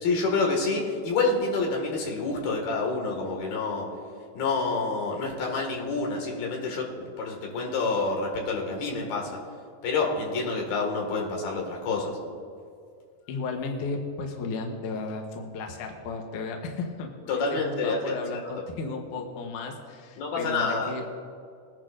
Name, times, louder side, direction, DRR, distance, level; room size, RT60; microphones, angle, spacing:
voice 1, 0.0-3.9 4.4-9.4 9.8-12.1 17.3-18.2 20.2-20.9, left 3 dB, 85° left, 0 dB, 3.8 m, -28 dB
voice 2, 13.3-21.0, left 4 dB, 70° left, 2 dB, 2.3 m, -34 dB
21.5 x 10.5 x 2.5 m, 2.2 s
omnidirectional pair, 4.2 m